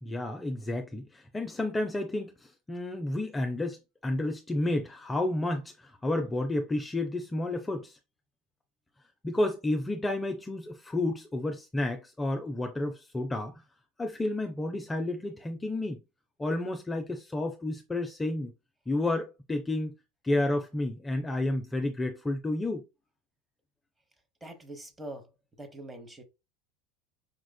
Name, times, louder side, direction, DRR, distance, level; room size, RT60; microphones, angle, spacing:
voice 1, 0.0-3.8 4.0-8.0 9.2-13.5 14.0-16.0 16.4-18.5 18.9-19.9 20.2-22.8, left 2 dB, 15° left, 0.5 m, -31 dB
voice 2, 24.4-25.3 25.6-26.2, right 1 dB, 15° right, 1.0 m, -43 dB
5.1 x 2.4 x 2.2 m
figure-of-eight pair, 75°, 0 cm